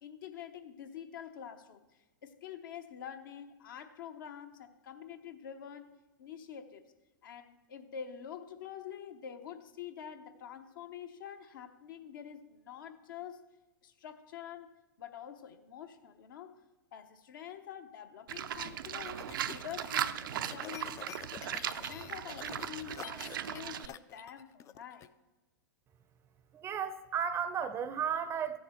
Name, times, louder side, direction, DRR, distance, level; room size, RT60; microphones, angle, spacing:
voice 1, 0.0-5.9 6.2-6.9 7.2-13.5 13.8-16.6 16.9-21.0 21.4-25.1, left 9 dB, 70° left, 6 dB, 1.0 m, -47 dB
Livestock farm animals working animals, 18.3-23.9, right 10 dB, 75° right, 0.5 m, -38 dB
sound 1, 18.5-25.1, left 10 dB, 25° left, 0.4 m, -48 dB
voice 2, 26.5-28.6, right 7 dB, 25° right, 11 dB, 0.6 m, -34 dB
14.0 x 7.0 x 4.4 m, 1.1 s
hypercardioid pair, 110°, 11 cm